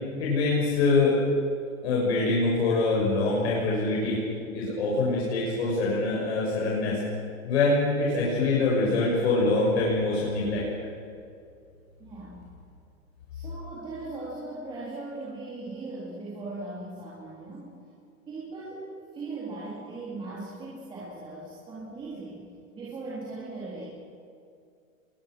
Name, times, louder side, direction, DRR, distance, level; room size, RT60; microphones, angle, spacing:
voice 1, 0.2-1.2 1.8-4.2 4.5-7.0 7.4-10.7, left 3 dB, 50° left, -4 dB, 6.3 m, -24 dB
voice 2, 12.0-12.4 13.3-17.8 18.3-22.5 22.7-23.8, right 2 dB, 10° right, -8 dB, 3.7 m, -39 dB
29.0 x 22.0 x 6.3 m, 2.4 s
hypercardioid pair, 170°, 41 cm